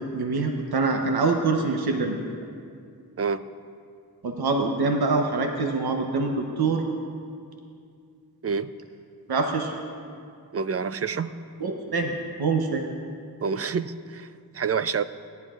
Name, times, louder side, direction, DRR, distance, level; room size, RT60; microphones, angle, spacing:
voice 1, 0.0-2.2 4.2-6.8 9.3-9.7 11.6-12.1 12.4-12.8, right 3 dB, 70° right, 3 dB, 0.9 m, -25 dB
voice 2, 3.2-3.5 8.4-8.7 10.5-11.4 13.4-15.0, right 5 dB, 40° right, 13 dB, 0.4 m, -28 dB
18.0 x 10.5 x 2.4 m, 2.3 s
cardioid pair, 50°, 39 cm